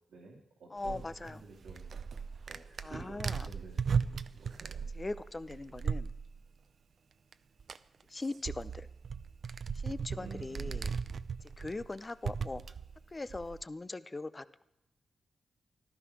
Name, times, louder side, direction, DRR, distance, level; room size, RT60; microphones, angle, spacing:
voice 1, 0.1-1.8 2.5-4.9 10.1-10.8, right 2 dB, 90° right, -4 dB, 2.6 m, -51 dB
voice 2, 0.7-1.4 2.8-3.5 5.0-6.1 8.1-8.9 9.8-10.9 11.6-12.6 13.1-14.6, left 2 dB, 25° left, 15 dB, 0.7 m, -40 dB
sound 1, 0.8-6.5 7.3-7.4 7.6-13.6, right 6 dB, 65° right, 0.5 m, -37 dB
14.5 x 12.5 x 6.2 m, 0.88 s
cardioid pair, 85°, 0 cm